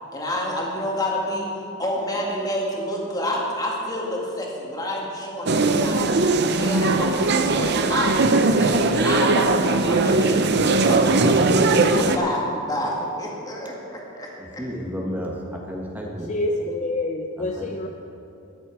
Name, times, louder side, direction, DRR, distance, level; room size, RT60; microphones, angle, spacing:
voice 1, 0.1-1.5 1.8-6.1 6.4-8.1 8.6-10.5 10.9-11.5 11.9-12.9 13.2-14.3 14.5-14.6, left 1 dB, 20° left, -2 dB, 2.2 m, -28 dB
sound 1, 5.5-12.2, right 3 dB, 55° right, 0.7 m, -19 dB
voice 2, 11.0-11.5 14.4-16.3 17.4-17.7, equal, 10° right, -1 dB, 1.3 m, -32 dB
voice 3, 16.3-17.9, left 2 dB, 35° left, 4 dB, 0.5 m, -27 dB
13.0 x 11.0 x 4.9 m, 2.7 s
head